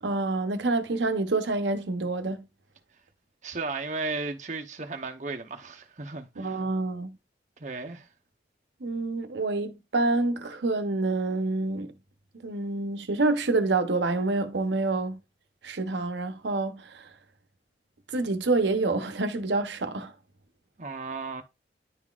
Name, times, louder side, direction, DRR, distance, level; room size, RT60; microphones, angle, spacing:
voice 1, 0.0-2.4 6.4-7.1 8.8-11.9 12.4-15.2 15.6-17.1 18.1-20.1, right 3 dB, 80° right, 0.8 m, -27 dB
voice 2, 3.4-6.6 7.6-8.1 20.8-21.4, right 3 dB, 40° right, 0.8 m, -35 dB
10.5 x 3.8 x 2.4 m
head